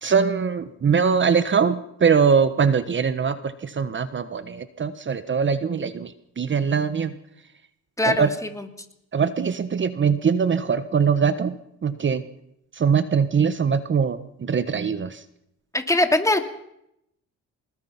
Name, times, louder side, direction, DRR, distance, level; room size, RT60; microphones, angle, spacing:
voice 1, 0.0-7.2 8.0-8.3 9.1-12.2 12.7-15.2, right 6 dB, 40° right, 12 dB, 1.3 m, -22 dB
voice 2, 8.0-8.3 8.6-8.7 15.7-16.5, left 2 dB, 10° left, 6 dB, 2.7 m, -21 dB
25.5 x 20.5 x 5.9 m, 0.78 s
cardioid pair, 90°, 30 cm